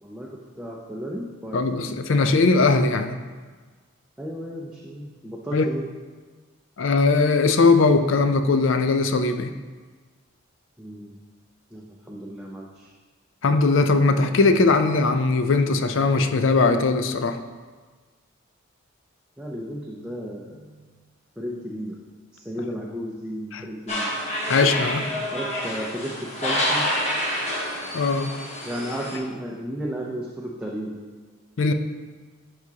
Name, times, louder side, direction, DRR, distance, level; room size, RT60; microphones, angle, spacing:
voice 1, 0.0-2.0 4.2-5.9 10.8-11.2 11.7-12.9 19.4-20.8 21.4-22.0 22.3-24.3 25.3-26.9 28.6-31.0, equal, 5° right, -4 dB, 0.5 m, -34 dB
voice 2, 1.5-3.2 5.5-5.7 6.8-9.5 13.4-17.4 23.5-23.6 24.5-25.1 27.9-28.3 31.6-31.7, left 3 dB, 65° left, 8 dB, 0.5 m, -20 dB
sound 1, 23.9-29.2, equal, 30° left, 1.2 m, -28 dB
11.0 x 4.8 x 2.8 m, 1.4 s
head